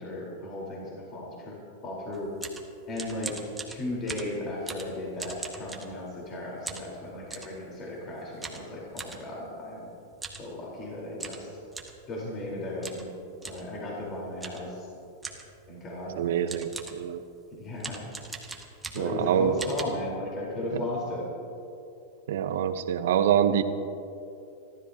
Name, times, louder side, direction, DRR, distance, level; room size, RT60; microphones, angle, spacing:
voice 1, 0.0-1.6 1.8-2.3 2.9-3.4 3.7-9.8 10.3-11.5 12.1-13.1 13.4-14.9 15.7-16.5 17.5-18.0 18.9-21.3, left 1 dB, 30° left, -4 dB, 4.2 m, -35 dB
sound 1, 2.1-6.3 6.7-7.6 8.4-9.2 10.1-10.5 10.8-10.9 11.2-12.0 12.8-13.1 13.4-13.7 14.4-14.7 15.2-15.6 16.1-16.2 16.5-17.1 17.8-19.2 19.6-19.8, right 3 dB, 10° right, 1.5 m, -40 dB
voice 2, 16.2-17.2 18.9-19.5 20.7-20.8 22.3-23.6, right 9 dB, 75° right, 10 dB, 0.9 m, -25 dB
27.0 x 13.0 x 2.9 m, 2.7 s
hypercardioid pair, 125°, 0 cm